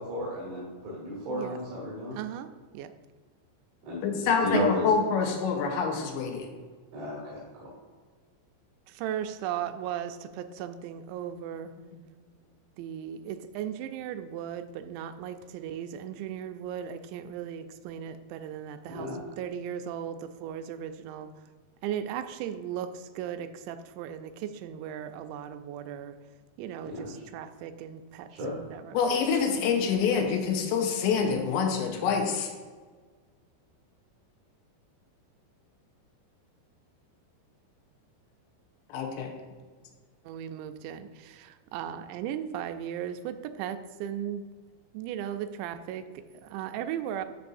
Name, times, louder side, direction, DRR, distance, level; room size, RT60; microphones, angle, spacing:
voice 1, 0.0-2.1 3.8-4.7 6.9-7.7 18.9-19.2 26.8-27.1 28.3-28.5, equal, 60° right, -5 dB, 3.8 m, -34 dB
voice 2, 1.3-1.6 2.1-2.9 8.9-11.8 12.8-21.3 21.8-26.2 26.6-29.0 40.2-44.5 44.9-47.2, right 9 dB, 85° right, 9 dB, 2.8 m, -37 dB
voice 3, 4.0-6.5 28.9-32.5 38.9-39.3, left 6 dB, 85° left, 3 dB, 3.2 m, -26 dB
13.0 x 5.5 x 2.6 m, 1.5 s
omnidirectional pair, 5.2 m